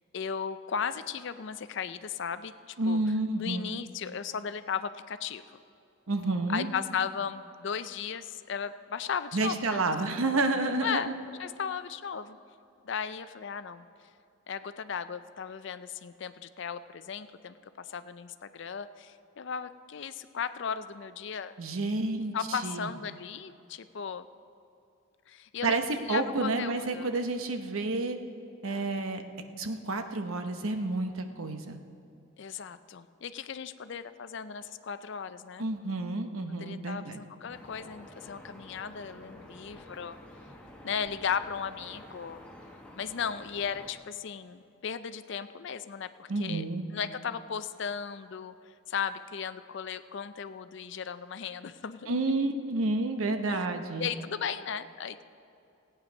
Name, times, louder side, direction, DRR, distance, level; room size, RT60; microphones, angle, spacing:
voice 1, 0.1-3.0 3.4-5.6 6.5-9.8 10.1-10.2 10.8-11.1 11.4-12.4 12.8-13.8 14.5-21.5 22.3-24.3 25.3-25.8 26.1-27.1 27.8-27.9 28.7-28.9 32.4-35.7 36.6-40.2 40.8-42.4 43.0-46.7 46.9-52.2 53.5-53.7 54.0-55.2, left 7 dB, 55° left, 12 dB, 0.4 m, -36 dB
voice 2, 2.8-3.7 6.1-6.7 9.3-11.1 21.6-22.9 25.6-25.8 26.1-28.2 28.6-29.2 29.6-31.8 35.6-37.2 46.3-46.8 52.1-54.1, right 2 dB, 75° right, 7 dB, 0.9 m, -30 dB
sound 1, 37.5-43.9, left 1 dB, 5° left, 1.1 m, -50 dB
17.0 x 8.9 x 5.3 m, 2.6 s
head